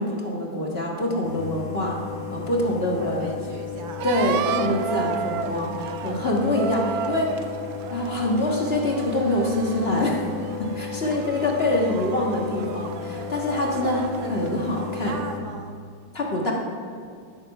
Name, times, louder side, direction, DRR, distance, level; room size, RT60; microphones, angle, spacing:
voice 1, 0.0-2.0 2.3-3.3 4.0-7.3 7.9-10.2 10.6-14.0 14.3-15.2 16.1-16.5, left 1 dB, 35° left, -1 dB, 1.7 m, -25 dB
sound 1, 1.2-15.4, left 7 dB, 75° left, 2.1 m, -35 dB
voice 2, 2.9-4.1 4.5-4.7 11.0-11.5 13.6-14.4 14.7-15.9, right 5 dB, 90° right, 6 dB, 1.9 m, -38 dB
sound 2, 4.0-15.2, right 8 dB, 75° right, 0.8 m, -33 dB
18.5 x 7.9 x 5.4 m, 2.2 s
omnidirectional pair, 2.1 m